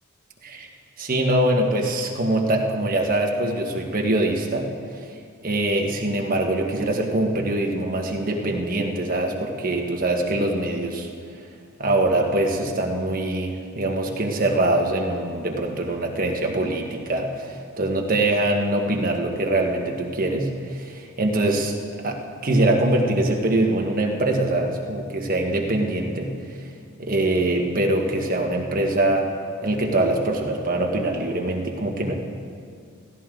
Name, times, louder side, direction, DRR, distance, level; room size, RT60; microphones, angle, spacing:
voice 1, 1.0-5.1 5.4-11.1 11.8-21.7 22.0-26.7 27.0-29.3 29.6-32.1, right 1 dB, 40° right, 1 dB, 1.4 m, -23 dB
16.0 x 15.0 x 3.8 m, 2.2 s
head